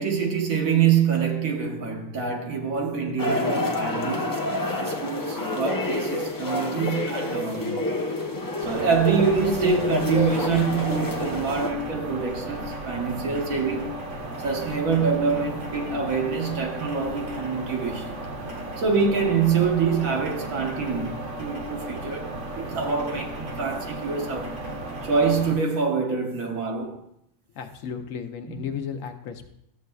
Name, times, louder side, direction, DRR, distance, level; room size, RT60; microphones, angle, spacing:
voice 1, 0.0-4.5 4.8-7.8 8.6-14.0 14.4-18.2 18.8-24.6 25.0-27.0 28.5-28.7, right 5 dB, 90° right, 1.5 m, -25 dB
sound 1, 3.2-11.7, left 2 dB, 20° left, 0.6 m, -27 dB
sound 2, 8.6-25.5, right 1 dB, 65° right, 1.6 m, -35 dB
voice 2, 27.5-29.4, left 7 dB, 75° left, 1.1 m, -34 dB
12.5 x 7.8 x 2.3 m
omnidirectional pair, 1.4 m